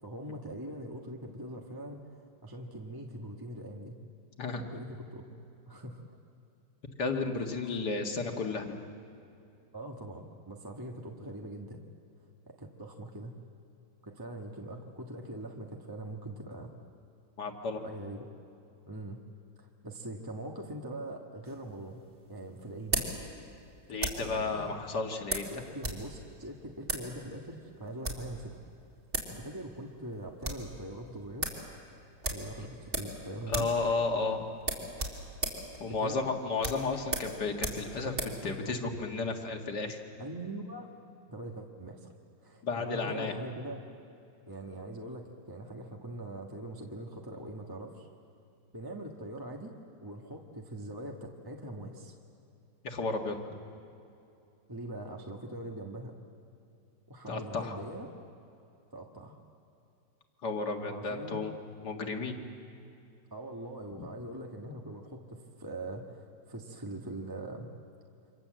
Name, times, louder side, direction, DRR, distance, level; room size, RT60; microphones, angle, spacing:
voice 1, 0.0-4.0 4.7-5.2 5.7-6.0 7.4-7.7 9.7-11.8 12.5-13.4 14.0-16.8 17.8-18.3 18.9-19.2 19.6-22.0 22.3-23.1 24.2-24.7 25.5-28.6 29.3-31.5 32.3-33.7 35.9-36.2 40.2-40.9 41.3-42.1 42.4-43.8 44.5-48.1 48.7-49.7 50.0-52.2 54.7-56.2 57.1-58.1 58.9-59.4 60.9-61.4 63.3-67.7, right 1 dB, 15° right, 0 dB, 1.4 m, -42 dB
voice 2, 4.4-4.7 7.0-8.8 17.4-17.8 23.9-25.5 33.5-34.4 35.8-38.2 38.4-40.0 42.6-43.3 52.8-53.3 57.3-57.8 60.4-61.5 61.8-62.4 64.0-64.1, left 3 dB, 60° left, 3 dB, 2.5 m, -33 dB
sound 1, 21.4-24.4 25.3-26.0 26.3-26.4 26.8-27.1 27.8-28.3 28.9-29.0 29.1-29.4 29.7-29.8 30.1-30.7 31.0-31.1 31.4-31.6 32.2-33.2 33.5-33.8 34.1-34.2 34.6-38.4, right 2 dB, 35° right, 3.4 m, -35 dB
28.5 x 25.5 x 7.6 m, 2.6 s
omnidirectional pair, 2.0 m